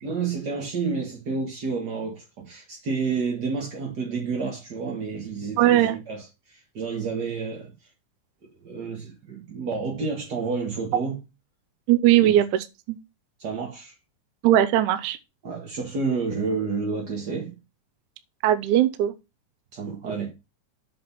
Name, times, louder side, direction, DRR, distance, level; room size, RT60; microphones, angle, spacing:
voice 1, 0.0-7.9 8.4-11.2 12.2-12.3 13.4-14.0 15.4-17.5 19.7-20.3, right 4 dB, 40° right, 1.6 m, -30 dB
voice 2, 5.6-6.0 11.9-13.0 14.4-15.2 18.4-19.1, right 12 dB, 75° right, 2.0 m, -19 dB
7.5 x 4.3 x 5.9 m
omnidirectional pair, 3.8 m